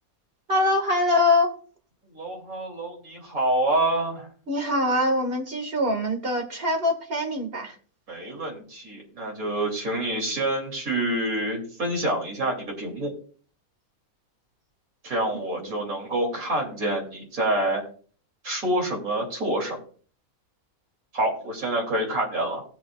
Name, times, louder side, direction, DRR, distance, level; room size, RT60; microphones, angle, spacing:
voice 1, 0.5-1.5 4.5-7.7 15.5-15.7, left 2 dB, 40° right, 3 dB, 2.0 m, -23 dB
voice 2, 2.1-4.3 8.1-13.1 15.0-17.8 18.4-19.8 21.1-22.6, right 1 dB, 75° right, -1 dB, 3.4 m, -27 dB
18.5 x 6.1 x 2.4 m, 0.44 s
omnidirectional pair, 1.5 m